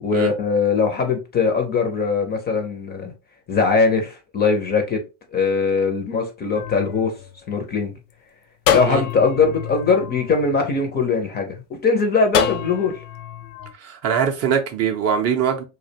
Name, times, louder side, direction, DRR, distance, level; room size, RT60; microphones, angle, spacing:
voice 1, 0.0-3.1 3.5-5.0 5.3-7.1 7.5-7.9 8.7-11.5 11.8-13.0, left 4 dB, 25° left, 0.4 m, -21 dB
sound 1, 6.5-8.0 8.7-11.2 12.3-13.7, left 9 dB, 85° left, 0.5 m, -27 dB
voice 2, 13.8-15.6, right 7 dB, 35° right, 0.4 m, -22 dB
2.4 x 2.2 x 2.6 m
supercardioid pair, 100°, 44 cm